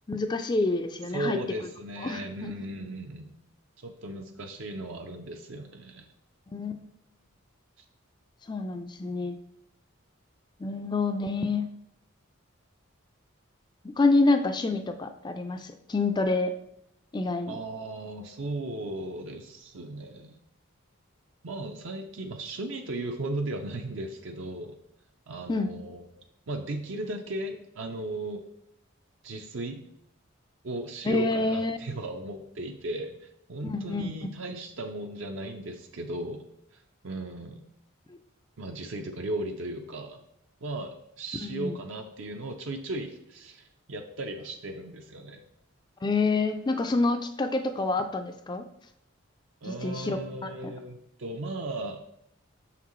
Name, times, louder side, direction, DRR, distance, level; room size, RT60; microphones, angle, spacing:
voice 1, 0.1-1.4 2.0-2.5 6.5-6.8 8.5-9.4 10.6-11.7 13.8-16.5 17.1-17.6 25.5-25.7 31.0-31.8 33.6-34.1 41.3-41.8 46.0-48.7 49.6-50.7, left 3 dB, 20° left, 7 dB, 0.3 m, -27 dB
voice 2, 1.1-3.3 3.8-6.1 17.5-20.4 21.4-24.8 25.3-26.1 26.5-28.4 29.2-29.8 30.6-36.4 36.7-37.6 38.6-40.2 40.6-45.4 49.6-52.0, right 2 dB, 60° right, 4 dB, 0.5 m, -36 dB
6.5 x 5.8 x 3.1 m, 0.76 s
head